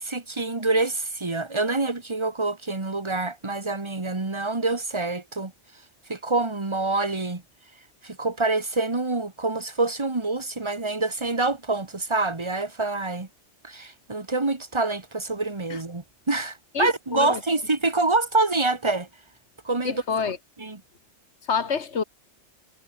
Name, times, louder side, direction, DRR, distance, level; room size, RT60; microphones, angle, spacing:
voice 1, 0.0-5.5 6.1-7.4 8.0-13.3 13.6-19.1 19.6-20.0 20.6-20.8, right 3 dB, 25° right, 1.7 m, -26 dB
voice 2, 16.7-17.4 19.8-20.4 21.5-22.0, left 5 dB, 65° left, 1.9 m, -27 dB
omnidirectional pair, 1.2 m